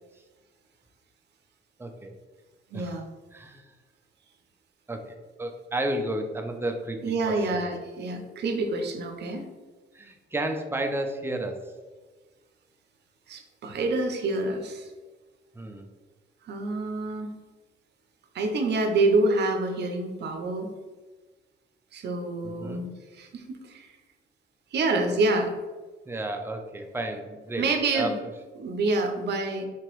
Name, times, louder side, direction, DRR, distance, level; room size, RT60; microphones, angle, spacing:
voice 1, 1.8-2.1 2.7-3.0 3.3-3.7 4.9-7.0 7.3-7.6 9.9-11.6 15.5-15.9 22.4-22.8 26.1-27.7 27.9-28.1, right 1 dB, 10° right, 4 dB, 0.4 m, -32 dB
voice 2, 2.7-3.1 7.0-9.5 13.3-14.9 16.4-17.4 18.3-20.7 21.9-22.9 23.1-23.9 24.7-25.5 27.6-28.1 28.6-29.7, right 2 dB, 60° right, 5 dB, 0.6 m, -27 dB
3.4 x 2.9 x 3.0 m, 1.3 s
cardioid pair, 90°, 20 cm